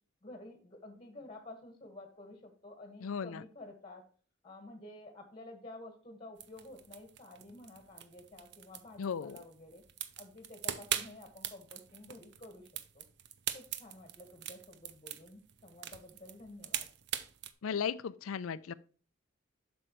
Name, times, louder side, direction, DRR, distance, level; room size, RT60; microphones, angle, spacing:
voice 1, 0.2-4.1 4.4-9.8 10.2-12.7 12.9-13.0 13.5-16.9, left 2 dB, 25° left, 1.5 m, -51 dB
voice 2, 3.0-3.4 9.0-9.4 17.6-18.7, left 6 dB, 90° left, 0.4 m, -36 dB
sound 1, 6.4-17.5, right 10 dB, 60° right, 0.6 m, -42 dB
7.8 x 6.1 x 3.1 m
head